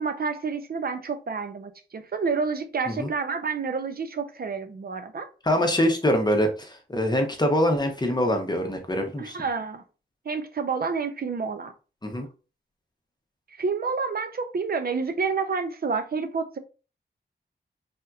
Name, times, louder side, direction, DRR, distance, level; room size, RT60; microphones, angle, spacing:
voice 1, 0.0-5.3 9.2-9.8 10.3-11.7 13.6-16.6, right 5 dB, 60° right, 0.5 m, -29 dB
voice 2, 5.4-9.4 12.0-12.3, equal, 25° left, 0.8 m, -24 dB
3.5 x 2.7 x 2.3 m
wide cardioid pair, 60°, 18 cm